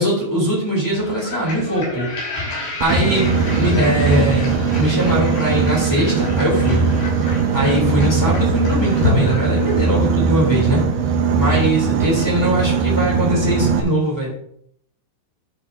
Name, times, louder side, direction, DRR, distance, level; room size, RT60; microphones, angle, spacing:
voice 1, 0.0-2.1 2.8-6.9 7.5-10.8 11.4-14.4, equal, 5° left, -4 dB, 2.2 m, -21 dB
sound 1, 0.9-10.2, left 1 dB, 60° left, 5.3 m, -29 dB
Boat Water vehicle, 2.8-13.8, right 5 dB, 75° right, 2.3 m, -19 dB
12.0 x 6.9 x 2.7 m, 0.67 s
omnidirectional pair, 4.9 m